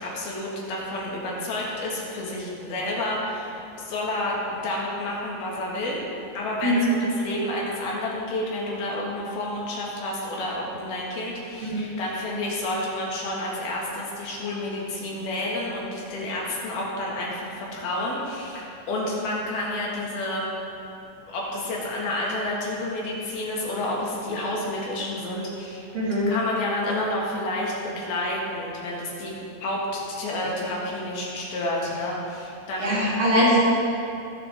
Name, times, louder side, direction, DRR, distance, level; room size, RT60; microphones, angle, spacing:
voice 1, 0.0-6.0 6.3-20.5 21.3-25.9 26.3-29.3 29.6-33.1, left 1 dB, 75° left, -4 dB, 3.5 m, -30 dB
voice 2, 25.9-26.3 32.8-33.6, equal, 65° right, -7 dB, 3.9 m, -21 dB
18.5 x 7.0 x 3.5 m, 2.7 s
omnidirectional pair, 4.5 m